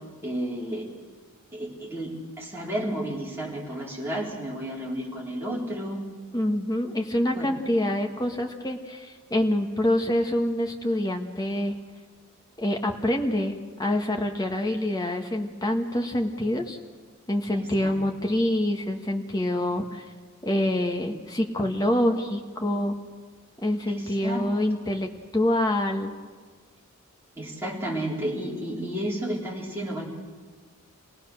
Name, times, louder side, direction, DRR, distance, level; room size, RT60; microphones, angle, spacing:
voice 1, 0.2-0.9 1.5-6.0 7.1-7.6 17.5-18.0 23.9-24.5 27.4-30.1, right 1 dB, 10° right, -5 dB, 4.4 m, -32 dB
voice 2, 6.3-11.7 12.6-13.5 13.8-16.8 17.3-20.0 20.4-23.0 23.6-26.1, left 1 dB, 15° left, 2 dB, 1.6 m, -26 dB
27.5 x 18.0 x 6.5 m, 1.5 s
head